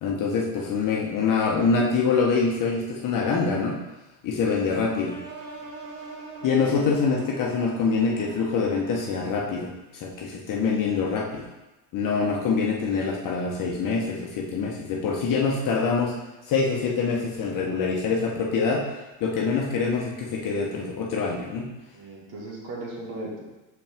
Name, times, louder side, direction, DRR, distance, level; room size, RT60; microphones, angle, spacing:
voice 1, 0.0-3.8 4.2-5.2 6.4-11.5 11.9-16.2 16.4-18.9 19.2-21.7, left 5 dB, 45° left, -2 dB, 1.1 m, -25 dB
sound 1, 5.0-9.8, right 4 dB, 70° right, 1.5 m, -42 dB
voice 2, 6.4-6.7 21.9-23.4, right 2 dB, 55° right, -3 dB, 2.3 m, -38 dB
6.2 x 5.4 x 3.6 m, 1.1 s
supercardioid pair, 100°, 46 cm